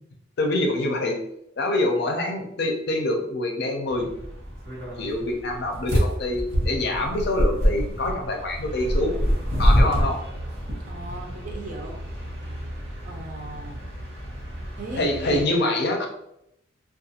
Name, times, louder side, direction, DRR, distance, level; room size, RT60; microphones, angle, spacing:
voice 1, 0.4-1.2 1.6-4.1 4.9-9.2 9.6-10.2 15.0-16.1, left 1 dB, 60° left, 2 dB, 0.5 m, -25 dB
sound 1, 3.9-15.4, equal, 85° right, 1.3 m, -27 dB
voice 2, 10.9-12.0 13.0-13.7 14.8-15.6, right 2 dB, 45° right, 1 dB, 0.5 m, -36 dB
2.4 x 2.3 x 2.7 m, 0.78 s
head